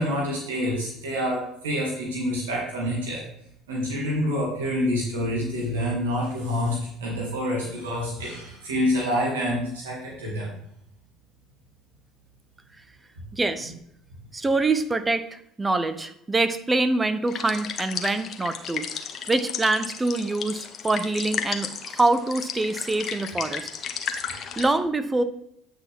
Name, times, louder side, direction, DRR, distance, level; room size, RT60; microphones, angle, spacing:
voice 1, 0.0-3.2 3.7-10.6, equal, 90° right, -4 dB, 2.3 m, -27 dB
voice 2, 13.3-13.7 14.3-23.7 24.2-25.2, right 2 dB, 20° right, 11 dB, 0.7 m, -25 dB
sound 1, 17.3-24.7, left 7 dB, 50° left, 1.0 m, -34 dB
8.8 x 6.1 x 3.6 m, 0.73 s
hypercardioid pair, 70°, 0 cm